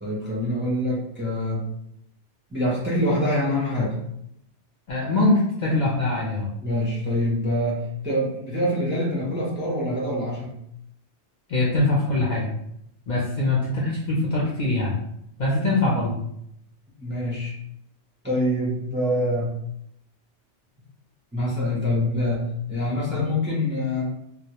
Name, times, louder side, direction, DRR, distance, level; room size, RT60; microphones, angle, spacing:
voice 1, 0.0-1.7 2.5-3.9 6.6-10.5 13.4-13.5 17.0-17.5 18.2-19.5 21.3-22.4 22.7-24.0, left 1 dB, 20° right, -5 dB, 0.3 m, -25 dB
voice 2, 4.9-6.5 11.5-12.5 13.1-14.9 15.4-16.1, left 2 dB, 60° left, -5 dB, 0.5 m, -22 dB
2.1 x 2.0 x 2.8 m, 0.75 s
omnidirectional pair, 1.2 m